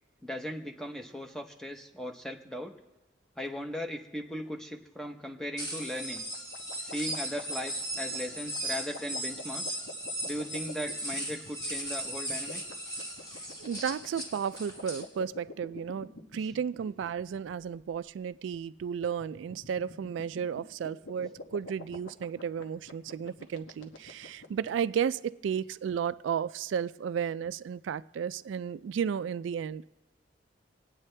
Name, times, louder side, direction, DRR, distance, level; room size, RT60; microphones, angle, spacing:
voice 1, 0.2-2.7 3.4-6.2 6.8-9.8 10.3-12.6 16.4-16.5, equal, 5° left, 0.8 m, -38 dB
sound 1, 5.6-15.0, right 1 dB, 20° left, 1.8 m, -37 dB
sound 2, 5.8-24.7, left 2 dB, 80° left, 1.2 m, -47 dB
voice 2, 13.3-29.9, right 7 dB, 85° right, 0.3 m, -33 dB
26.0 x 9.1 x 3.3 m
head